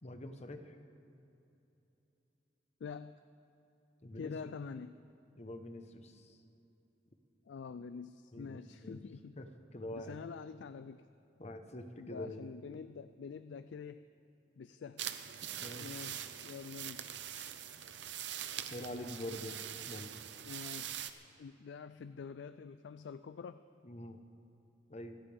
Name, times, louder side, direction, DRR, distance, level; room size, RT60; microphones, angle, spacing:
voice 1, 0.0-0.8 4.0-4.5 5.4-6.4 8.3-9.0 9.4-10.2 11.4-12.5 15.6-16.0 17.3-17.5 18.7-19.6 19.9-20.1 23.8-24.2 24.9-25.2, left 1 dB, 40° left, 7 dB, 1.0 m, -45 dB
voice 2, 2.8-3.2 4.2-4.9 7.5-9.4 9.9-11.1 12.0-14.1 14.6-15.0 15.8-17.1 20.4-21.0 21.4-23.6, left 5 dB, 75° left, 12 dB, 0.4 m, -46 dB
sound 1, 15.0-21.1, right 10 dB, 75° right, 0.7 m, -43 dB
26.0 x 13.5 x 3.5 m, 3.0 s
head